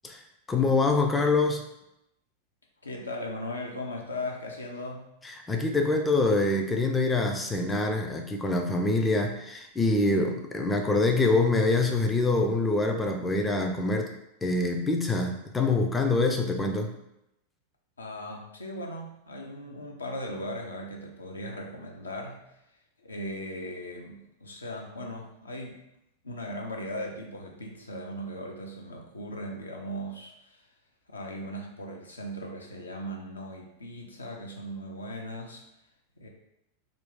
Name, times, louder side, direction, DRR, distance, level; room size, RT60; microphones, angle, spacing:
voice 1, 0.5-1.6 5.2-14.1 14.4-16.9, left 2 dB, 15° left, 3 dB, 0.3 m, -25 dB
voice 2, 2.8-5.1 18.0-22.6 23.0-25.8 26.2-30.7 31.1-35.6 36.2-36.3, equal, 75° left, 0 dB, 0.5 m, -38 dB
2.4 x 2.3 x 3.6 m, 0.83 s
figure-of-eight pair, 90°, 0 cm